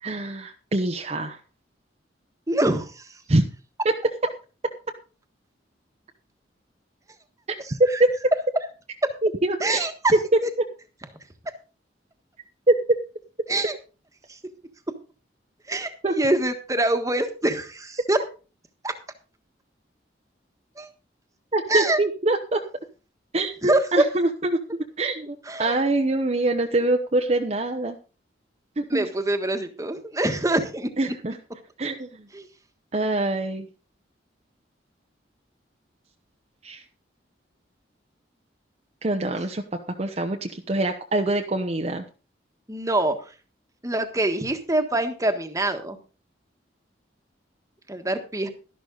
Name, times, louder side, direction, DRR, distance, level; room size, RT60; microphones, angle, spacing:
voice 1, 0.0-1.4 3.3-3.4 9.2-9.9 12.7-12.8 16.0-16.1 21.5-22.6 23.3-24.6 25.0-28.0 28.8-29.1 31.0-31.4 31.8-32.3 32.9-33.7 36.6-36.8 39.0-42.0, right 2 dB, 35° right, 3 dB, 0.9 m, -25 dB
voice 2, 2.5-3.2 7.6-8.0 9.6-10.1 10.4-10.5 13.5-13.8 14.3-14.4 15.7-18.2 18.8-18.9 20.8-20.9 21.7-22.0 23.6-23.8 25.5-25.8 28.9-30.9 32.3-32.5 42.7-43.3 43.8-46.0 47.9-48.5, right 1 dB, 20° right, 7 dB, 1.4 m, -25 dB
12.5 x 11.5 x 3.9 m, 0.35 s
head